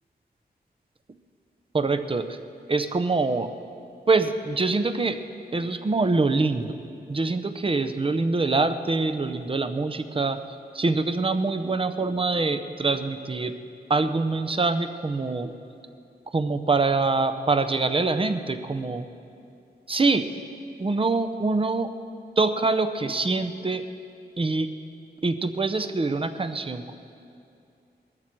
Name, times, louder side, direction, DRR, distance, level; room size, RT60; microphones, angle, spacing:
voice 1, 1.7-2.4 2.7-3.5 4.1-5.2 5.5-6.8 7.1-10.4 10.7-13.5 13.9-15.5 16.3-19.0 19.9-20.3 20.8-21.9 22.4-23.8 24.4-24.7 25.2-26.9, right 3 dB, 30° right, 9 dB, 0.7 m, -24 dB
20.0 x 13.5 x 4.6 m, 2.6 s
wide cardioid pair, 115°, 17 cm